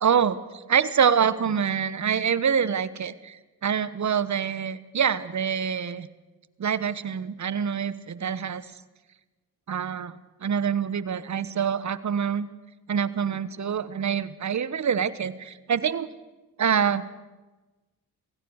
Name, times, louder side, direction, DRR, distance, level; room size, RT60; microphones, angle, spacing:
voice 1, 0.0-6.1 6.6-8.6 9.7-10.1 10.4-12.5 12.9-16.1 16.6-17.1, right 7 dB, 45° right, 16 dB, 1.2 m, -25 dB
24.5 x 16.5 x 6.5 m, 1.2 s
supercardioid pair, 55°, 39 cm